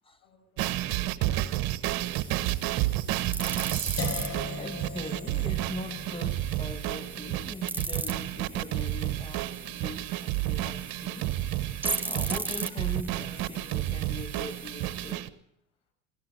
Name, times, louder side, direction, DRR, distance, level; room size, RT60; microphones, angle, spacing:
voice 1, 0.2-0.8 1.1-2.2 2.5-2.9, left 5 dB, 70° left, 7.4 m, -59 dB
sound 1, 0.6-15.3, right 15 dB, 55° right, 1.2 m, -31 dB
sound 2, 2.0-15.1, right 2 dB, 5° right, 1.2 m, -39 dB
sound 3, 4.0-9.9, left 4 dB, 35° left, 2.2 m, -41 dB
voice 2, 4.5-11.4 12.0-15.3, left 2 dB, 10° left, 1.7 m, -42 dB
23.0 x 14.5 x 8.0 m
hypercardioid pair, 70°, 42 cm